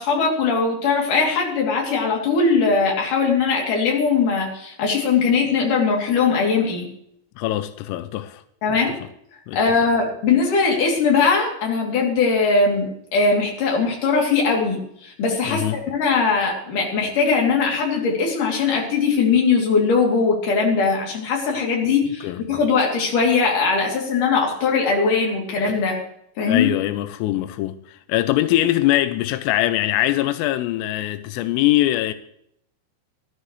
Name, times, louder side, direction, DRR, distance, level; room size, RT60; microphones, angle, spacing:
voice 1, 0.0-6.9 8.6-8.9 9.5-26.0 26.4-26.7, left 4 dB, 45° left, 3.9 m, -20 dB
voice 2, 7.4-8.4 8.7-8.8 9.5-9.6 15.5-15.8 22.2-22.4 26.5-32.1, left 15 dB, 90° left, 3.3 m, -22 dB
19.5 x 12.5 x 3.2 m
omnidirectional pair, 5.8 m